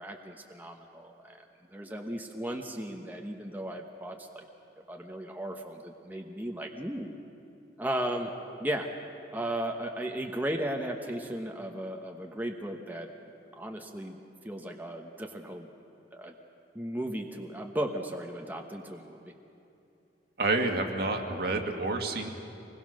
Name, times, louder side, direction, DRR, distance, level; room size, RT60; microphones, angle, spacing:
voice 1, 0.0-1.4 1.7-4.4 4.9-7.1 7.8-8.3 8.6-8.9 9.3-13.1 13.6-14.2 14.4-15.7 16.1-16.3 16.7-19.2, right 1 dB, 10° right, 2 dB, 1.1 m, -35 dB
voice 2, 20.4-22.3, right 2 dB, 60° right, 3 dB, 1.9 m, -29 dB
25.0 x 20.5 x 6.5 m, 2.7 s
head